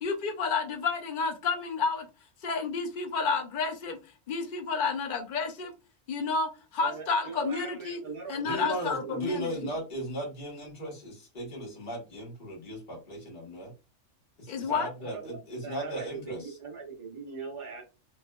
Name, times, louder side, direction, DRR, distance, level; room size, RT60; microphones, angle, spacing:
voice 1, 0.0-2.1 2.4-4.0 4.3-5.7 6.1-8.0 8.3-9.5 14.5-14.9, left 4 dB, 60° left, 0.5 m, -30 dB
voice 2, 6.8-8.7 9.0-9.7 14.7-17.8, right 5 dB, 25° right, 0.9 m, -41 dB
voice 3, 8.4-13.7 14.4-16.5, right 1 dB, 35° left, 1.4 m, -37 dB
3.2 x 2.7 x 2.2 m
omnidirectional pair, 1.6 m